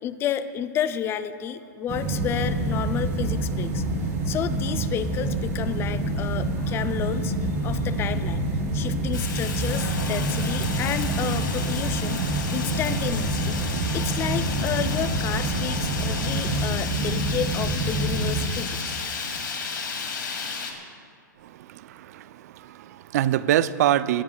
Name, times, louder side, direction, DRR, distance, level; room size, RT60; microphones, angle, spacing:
voice 1, 0.0-3.8 4.3-7.4 7.6-8.5 8.7-12.2 12.5-13.6 13.9-19.0, left 9 dB, 25° left, 12 dB, 0.5 m, -31 dB
sound 1, 1.9-18.5, right 2 dB, 30° right, 3.6 m, -27 dB
Fire, 9.1-20.7, left 5 dB, 90° left, 2.6 m, -33 dB
sound 2, 9.7-16.6, left 5 dB, 70° left, 1.9 m, -37 dB
voice 2, 21.4-24.2, right 12 dB, 55° right, 15 dB, 0.5 m, -25 dB
22.0 x 17.5 x 2.4 m, 2.3 s
hypercardioid pair, 135°, 10 cm